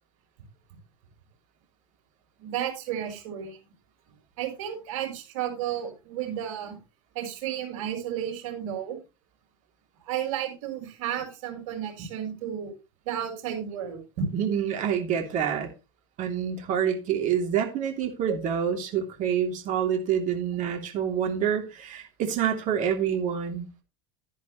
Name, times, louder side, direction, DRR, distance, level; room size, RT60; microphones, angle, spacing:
voice 1, 2.4-3.6 4.4-6.8 7.1-9.0 10.0-12.7 13.0-14.3 18.3-18.4, right 9 dB, 65° right, 2 dB, 5.6 m, -32 dB
voice 2, 14.3-15.7 16.2-23.7, right 8 dB, 50° right, 3 dB, 3.0 m, -27 dB
12.0 x 10.5 x 3.2 m, 0.29 s
hypercardioid pair, 80°, 17 cm